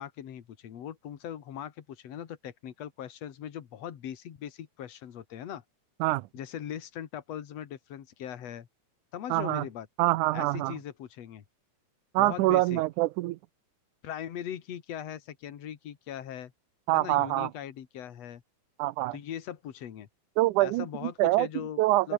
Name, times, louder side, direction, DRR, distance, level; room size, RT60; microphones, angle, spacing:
voice 1, 0.0-5.6 6.3-8.7 9.1-9.9 10.3-11.4 12.2-12.8 14.0-16.5 16.9-18.4 19.1-20.1 20.6-21.8 22.0-22.1, left 10 dB, 60° left, 2.8 m, -40 dB
voice 2, 9.3-9.7 10.0-10.8 12.1-13.4 16.9-17.5 18.8-19.2 20.4-21.5 21.8-22.1, right 18 dB, 90° right, 2.2 m, -25 dB
omnidirectional pair, 3.5 m